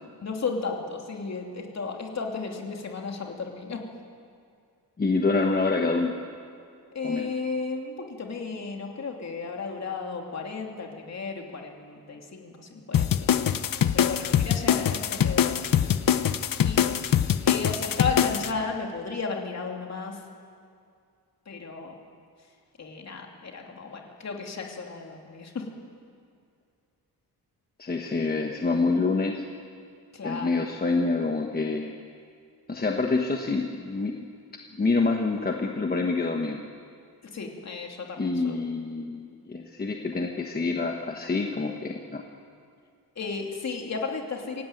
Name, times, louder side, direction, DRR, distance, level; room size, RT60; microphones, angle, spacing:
voice 1, 0.2-3.8 6.9-13.6 13.9-15.9 16.6-16.8 17.4-20.2 21.5-22.0 22.8-25.6 30.1-30.5 37.3-38.6 43.2-44.6, left 4 dB, 45° left, 1 dB, 2.9 m, -34 dB
voice 2, 5.0-6.1 7.0-7.3 27.8-29.4 30.2-31.9 32.7-34.1 34.7-36.6 38.2-42.2, left 3 dB, 25° left, 2 dB, 1.1 m, -26 dB
sound 1, 12.9-18.5, left 9 dB, 60° left, 0.9 m, -23 dB
25.0 x 16.5 x 9.2 m, 2.3 s
wide cardioid pair, 175°, 38 cm